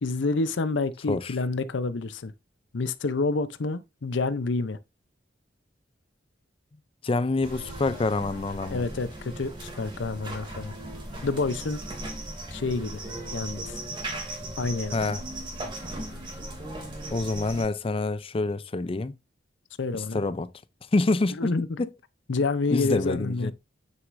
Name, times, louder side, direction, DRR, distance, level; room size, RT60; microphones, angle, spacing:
voice 1, 0.0-2.3 2.7-4.8 8.7-10.7 11.2-11.8 12.5-13.0 13.3-13.8 14.6-15.0 19.8-20.2 21.4-21.7 22.3-23.5, left 3 dB, 70° left, 0.6 m, -28 dB
voice 2, 7.0-8.9 14.9-15.2 17.1-19.2 19.9-20.5 20.9-21.5 21.8-21.9 22.7-23.5, left 3 dB, 30° left, 0.4 m, -27 dB
sound 1, 7.4-17.6, right 1 dB, 25° right, 2.4 m, -37 dB
9.2 x 6.4 x 2.6 m
head